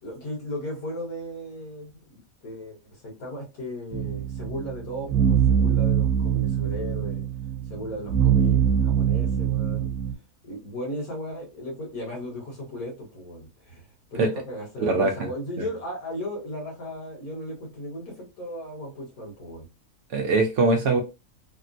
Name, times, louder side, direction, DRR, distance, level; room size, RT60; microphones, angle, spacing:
voice 1, 0.0-7.2 7.7-9.9 10.4-19.6, equal, 75° left, 1.8 m, -36 dB
sound 1, 3.9-10.1, right 8 dB, 85° right, 1.1 m, -23 dB
voice 2, 14.8-15.3 20.1-21.0, right 3 dB, 65° right, 0.8 m, -22 dB
3.5 x 2.1 x 2.5 m
omnidirectional pair, 1.5 m